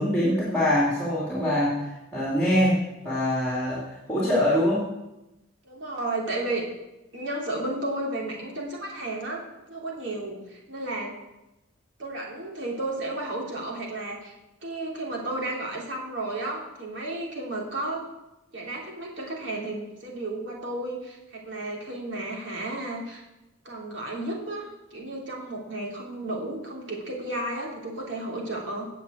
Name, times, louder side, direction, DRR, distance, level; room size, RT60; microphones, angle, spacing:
voice 1, 0.0-2.8 3.0-3.8 4.1-4.8, left 1 dB, 5° left, -7 dB, 2.7 m, -24 dB
voice 2, 5.6-6.7 7.1-9.4 9.7-11.1 12.0-14.3 14.6-18.0 18.5-23.2 23.6-28.9, right 2 dB, 60° right, -2 dB, 3.0 m, -33 dB
8.9 x 7.1 x 8.5 m, 0.98 s
head